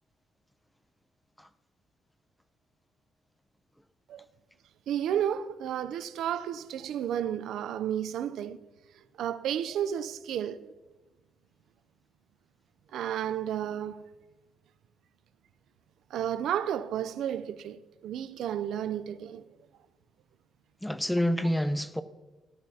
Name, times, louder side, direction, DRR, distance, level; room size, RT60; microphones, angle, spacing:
voice 1, 4.9-8.6 9.2-10.7 12.9-14.0 16.1-19.4, right 10 dB, 80° right, 0.5 m, -32 dB
voice 2, 20.8-22.0, equal, 5° left, 0.6 m, -28 dB
17.5 x 11.5 x 2.8 m
cardioid pair, 125°, 0 cm